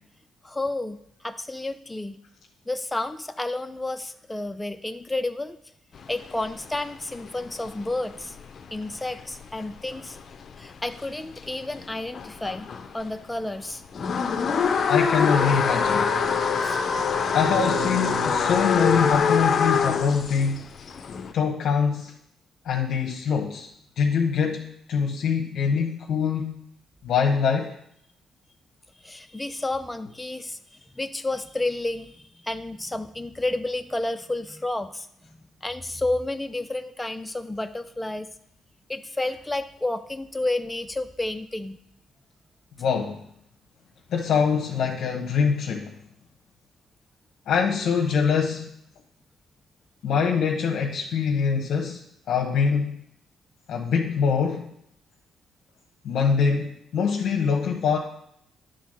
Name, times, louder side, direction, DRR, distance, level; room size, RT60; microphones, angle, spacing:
voice 1, 0.4-2.2 2.7-5.6 6.1-8.3 8.7-10.2 10.6-12.7 12.9-13.8 16.6-16.8 29.0-30.6 31.0-35.1 35.6-38.3 38.9-41.8, left 2 dB, 10° left, 8 dB, 0.5 m, -30 dB
sound 1, 5.9-13.0 13.4-21.3, left 6 dB, 50° left, 0.7 m, -25 dB
voice 2, 14.9-16.2 17.3-20.6 21.3-22.1 22.6-23.7 24.0-26.6 27.0-27.7 42.8-43.2 44.1-45.9 47.5-48.7 50.0-52.0 52.3-53.0 53.7-54.7 56.0-58.0, left 6 dB, 70° left, 1 dB, 1.0 m, -24 dB
sound 2, 17.4-20.4, right 1 dB, 70° right, 2.4 m, -36 dB
10.0 x 3.9 x 6.6 m, 0.74 s
cardioid pair, 90°, 0 cm